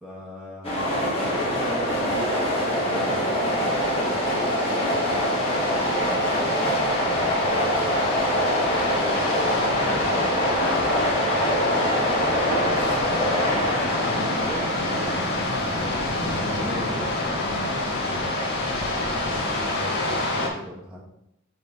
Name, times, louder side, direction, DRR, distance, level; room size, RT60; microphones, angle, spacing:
voice 1, 0.0-5.4 5.8-6.6 7.0-10.8 14.2-14.7 16.3-21.0, equal, 5° right, -4 dB, 1.0 m, -39 dB
sound 1, 0.6-20.4, equal, 30° left, 1.8 m, -25 dB
sound 2, 1.1-20.5, left 2 dB, 55° left, 1.3 m, -29 dB
voice 2, 11.2-14.5 15.1-15.5, equal, 30° right, 0 dB, 1.1 m, -40 dB
7.3 x 3.6 x 4.0 m, 0.81 s
head